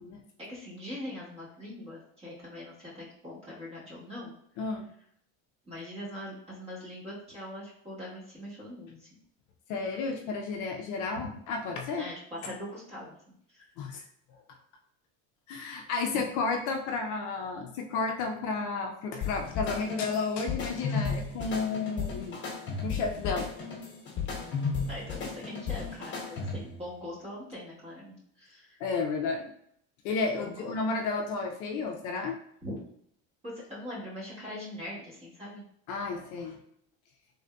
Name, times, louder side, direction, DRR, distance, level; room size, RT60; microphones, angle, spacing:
voice 1, 0.5-4.3 5.6-9.1 12.0-13.1 13.5-13.6 16.1-16.2 24.9-28.8 30.3-30.7 32.6-32.7 33.4-35.6, left 1 dB, 15° right, -7 dB, 1.2 m, -42 dB
voice 2, 4.6-4.9 9.7-12.1 13.8-14.0 15.5-22.4 22.8-23.5 28.8-29.5 30.0-32.4 35.9-36.6, left 4 dB, 60° left, 3 dB, 0.4 m, -32 dB
sound 1, 19.2-26.8, left 5 dB, 30° left, 1.0 m, -34 dB
3.5 x 2.6 x 2.2 m, 0.69 s
cardioid pair, 150°, 35 cm